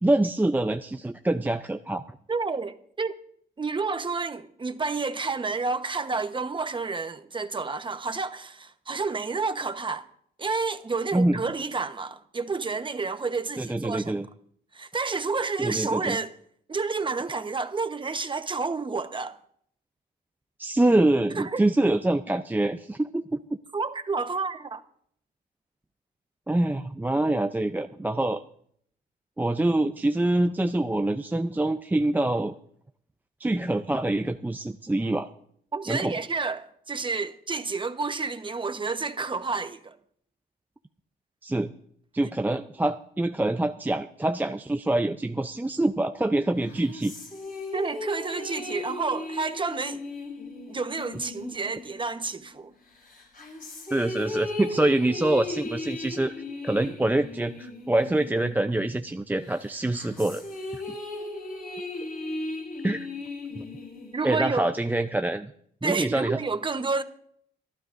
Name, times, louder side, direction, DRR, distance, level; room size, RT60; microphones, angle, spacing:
voice 1, 0.0-2.0 11.1-11.4 13.6-14.3 15.6-16.2 20.6-23.3 26.5-28.4 29.4-32.5 33.4-35.3 35.9-36.2 41.4-41.7 42.1-47.1 53.9-56.3 56.6-60.4 60.7-60.8 62.8-63.1 63.6-63.7 64.2-65.5 65.8-66.4, right 1 dB, 10° right, 0.5 m, -25 dB
voice 2, 2.3-3.2 3.6-10.0 10.4-14.3 14.7-16.3 16.7-19.4 21.3-21.6 23.7-24.8 35.7-39.9 47.7-50.0 50.7-52.7 64.1-64.7 65.8-67.0, right 4 dB, 25° right, 1.1 m, -30 dB
sound 1, 46.5-52.5 53.0-59.0 59.4-64.5, left 2 dB, 45° left, 7.2 m, -37 dB
27.0 x 12.0 x 2.6 m
cardioid pair, 90°, 20 cm